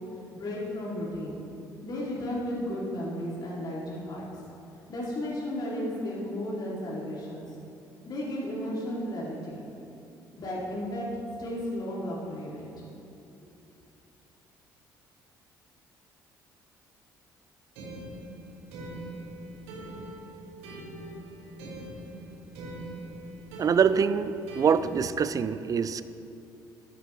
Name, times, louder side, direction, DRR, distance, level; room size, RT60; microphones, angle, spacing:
voice 1, 0.3-1.4 1.8-4.3 4.9-7.4 8.1-9.6 10.4-11.0 11.4-12.7, left 1 dB, 40° left, -6 dB, 2.6 m, -34 dB
sound 1, 17.8-25.4, right 1 dB, 65° right, 1.7 m, -42 dB
voice 2, 23.6-26.0, right 6 dB, 35° right, 14 dB, 0.5 m, -24 dB
13.0 x 11.0 x 3.1 m, 2.8 s
figure-of-eight pair, 50°, 10 cm